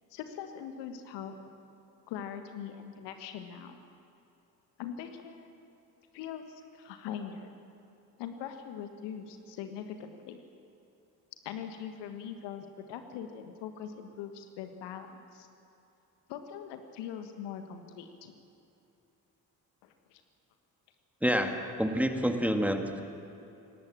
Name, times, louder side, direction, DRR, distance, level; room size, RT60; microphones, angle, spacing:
voice 1, 0.1-1.4 2.1-3.8 4.8-5.5 6.1-7.5 8.2-10.4 11.4-15.5 16.3-18.3 19.8-20.2, left 8 dB, 60° left, 7 dB, 1.6 m, -42 dB
voice 2, 21.2-23.0, equal, 5° right, 5 dB, 2.0 m, -28 dB
22.5 x 18.5 x 7.4 m, 2.8 s
figure-of-eight pair, 45°, 48 cm